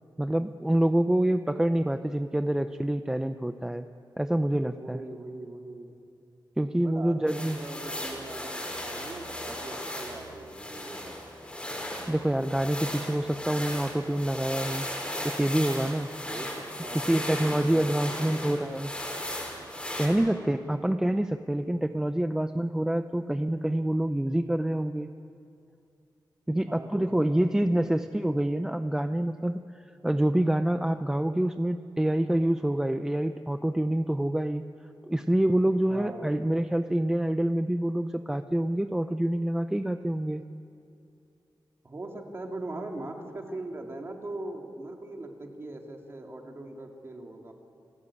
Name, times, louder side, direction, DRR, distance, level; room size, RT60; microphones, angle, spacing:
voice 1, 0.2-3.9 4.2-5.0 6.6-7.6 12.1-14.9 15.2-16.1 17.1-18.9 20.0-25.1 26.5-34.6 35.1-40.4, right 1 dB, 5° right, 9 dB, 0.5 m, -26 dB
voice 2, 4.6-5.9 6.8-11.2 16.3-17.2 17.5-18.9 20.2-20.9 26.6-27.0 27.3-27.6 27.8-28.0 35.2-35.3 35.9-36.4 41.8-47.5, right 2 dB, 30° right, 2 dB, 2.7 m, -41 dB
sound 1, 7.3-20.1, left 1 dB, 15° left, 4.4 m, -36 dB
29.5 x 17.5 x 8.5 m, 2.5 s
wide cardioid pair, 170°, 8 cm